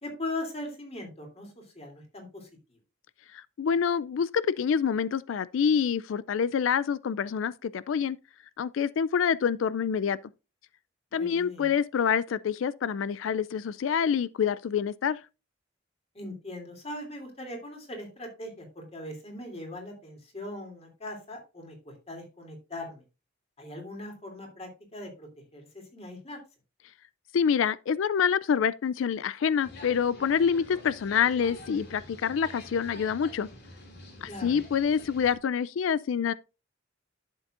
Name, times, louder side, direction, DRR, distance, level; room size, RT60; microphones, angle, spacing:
voice 1, 0.0-2.8 11.1-11.7 16.1-23.0 23.6-25.7 25.9-26.4 34.3-34.6, left 1 dB, 30° left, 3.0 m, -40 dB
voice 2, 3.3-8.2 8.6-10.2 11.1-15.2 27.3-33.5 34.2-36.3, left 7 dB, 80° left, 0.4 m, -27 dB
sound 1, 29.6-35.4, left 2 dB, 60° left, 2.5 m, -47 dB
11.5 x 7.3 x 2.5 m
head